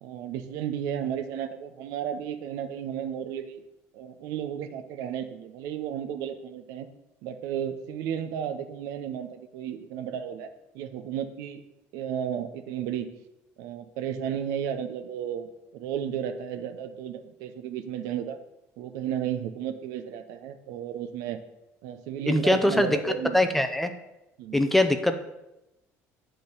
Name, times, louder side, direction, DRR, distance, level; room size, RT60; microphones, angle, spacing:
voice 1, 0.0-3.6 3.9-6.9 7.2-10.5 10.7-11.6 11.9-13.1 13.6-18.4 18.8-21.4 21.8-23.4 24.4-24.6, right 9 dB, 85° right, 9 dB, 0.7 m, -33 dB
voice 2, 22.3-23.0 23.3-23.9 24.5-25.2, left 1 dB, 5° left, 7 dB, 0.5 m, -22 dB
9.5 x 3.8 x 6.7 m, 0.93 s
cardioid pair, 160°, 6 cm